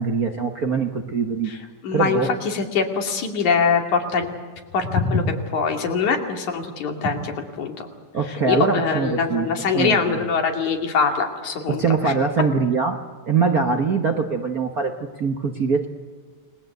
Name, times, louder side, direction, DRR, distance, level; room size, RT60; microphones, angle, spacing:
voice 1, 0.0-1.5 1.9-2.3 8.1-9.5 9.7-10.2 11.7-13.0 13.2-15.9, right 5 dB, 45° right, 4 dB, 1.2 m, -22 dB
voice 2, 1.8-4.3 4.7-7.7 8.3-12.1, left 5 dB, 85° left, 4 dB, 3.9 m, -23 dB
30.0 x 20.5 x 8.1 m, 1.5 s
omnidirectional pair, 3.3 m